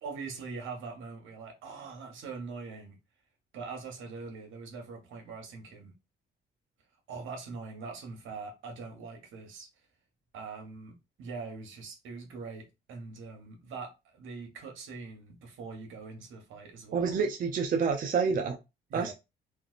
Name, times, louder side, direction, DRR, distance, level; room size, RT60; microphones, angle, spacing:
voice 1, 0.0-3.0 3.5-5.9 7.1-9.7 10.3-17.2 18.9-19.1, right 4 dB, 80° right, 1.1 m, -42 dB
voice 2, 16.9-18.6 18.9-19.1, right 5 dB, 45° right, 0.5 m, -28 dB
3.2 x 2.5 x 2.4 m
cardioid pair, 90°, 20 cm